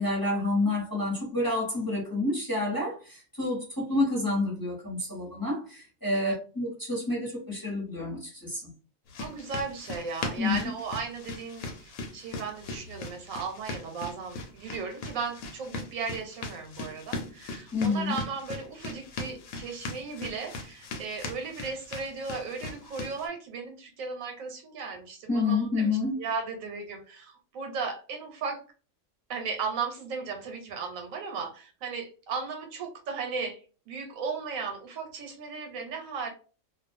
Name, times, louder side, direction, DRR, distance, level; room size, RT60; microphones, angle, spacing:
voice 1, 0.0-8.7 10.4-10.6 17.7-18.2 25.3-26.2, left 2 dB, 15° left, 0.9 m, -29 dB
sound 1, 9.1-23.3, left 2 dB, 85° left, 1.1 m, -40 dB
voice 2, 9.2-28.6 29.3-36.3, right 5 dB, 80° right, 1.1 m, -36 dB
2.4 x 2.3 x 2.5 m
omnidirectional pair, 1.4 m